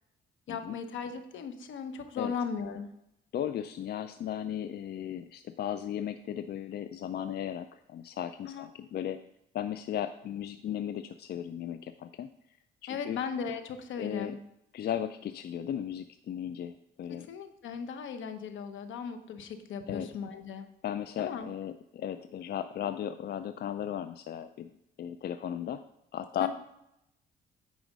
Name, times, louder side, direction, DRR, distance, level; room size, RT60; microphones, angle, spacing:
voice 1, 0.5-2.9 8.4-8.7 12.9-14.4 17.1-20.7 21.2-21.5 26.4-26.5, left 6 dB, 75° left, 8 dB, 1.0 m, -37 dB
voice 2, 3.3-9.2 9.5-12.3 12.8-13.2 14.0-14.3 14.7-16.7 17.0-17.3 19.9-20.1 20.8-24.7 25.0-25.8 26.1-26.5, left 10 dB, 55° left, 10 dB, 0.4 m, -36 dB
9.3 x 5.0 x 5.2 m, 0.84 s
cardioid pair, 90°, 20 cm